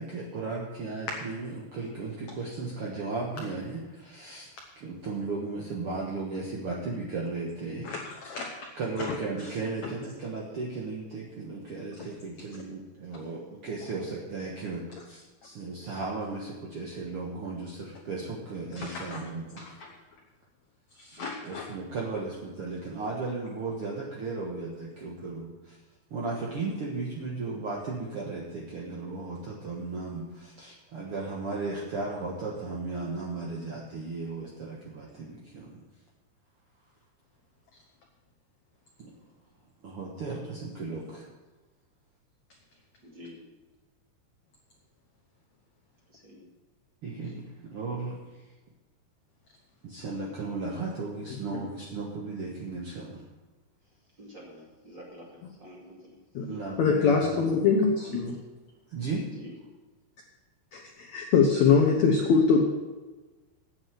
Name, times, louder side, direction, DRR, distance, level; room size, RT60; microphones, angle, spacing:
voice 1, 0.0-4.5 4.8-7.9 8.8-19.7 21.2-25.8 26.1-35.8 39.0-39.1 39.8-41.3 47.0-48.4 49.8-53.2 56.5-57.4 58.9-59.3, right 3 dB, 75° right, -3 dB, 1.3 m, -35 dB
voice 2, 7.8-8.7 9.0-9.5 9.8-9.9 12.0-12.1 18.7-19.2 19.6-19.9 20.9-21.7 51.8-51.9 56.3-56.5 56.8-57.9 58.1-58.3 60.7-62.6, left 5 dB, 80° left, 1 dB, 1.6 m, -25 dB
voice 3, 43.0-43.4 46.1-46.5 54.2-56.1 59.3-59.6, equal, 35° right, -3 dB, 2.3 m, -48 dB
9.5 x 8.0 x 7.9 m, 1.2 s
omnidirectional pair, 4.8 m